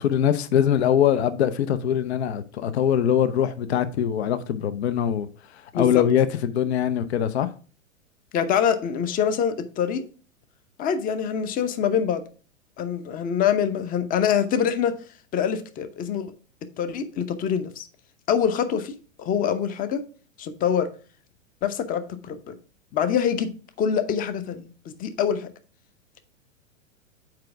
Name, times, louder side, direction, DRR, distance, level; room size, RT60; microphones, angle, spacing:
voice 1, 0.0-7.5, left 9 dB, 55° left, 0.8 m, -23 dB
voice 2, 5.7-6.1 8.3-10.0 10.8-12.2 12.8-15.0 15.3-16.3 16.8-17.9 18.3-20.1 20.4-20.9 21.6-22.6 22.9-23.5 23.8-25.5, left 8 dB, 20° left, 0.8 m, -25 dB
7.7 x 4.7 x 4.7 m
figure-of-eight pair, 100°, 39 cm